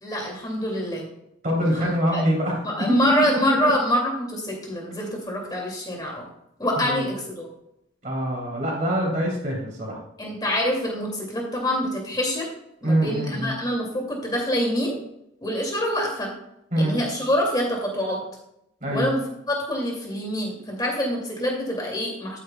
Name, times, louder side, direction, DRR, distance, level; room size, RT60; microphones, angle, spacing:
voice 1, 0.0-1.0 1.6-2.2 2.6-6.3 6.6-7.5 10.2-12.5 12.8-15.0 15.4-16.3 16.8-18.2 18.9-22.4, equal, 20° left, 0 dB, 2.4 m, -26 dB
voice 2, 1.4-3.1 3.5-3.7 6.8-7.0 8.0-10.0 12.8-13.6 16.7-17.0 18.8-19.1, equal, 40° right, -2 dB, 3.1 m, -24 dB
13.0 x 9.2 x 2.3 m, 0.79 s
head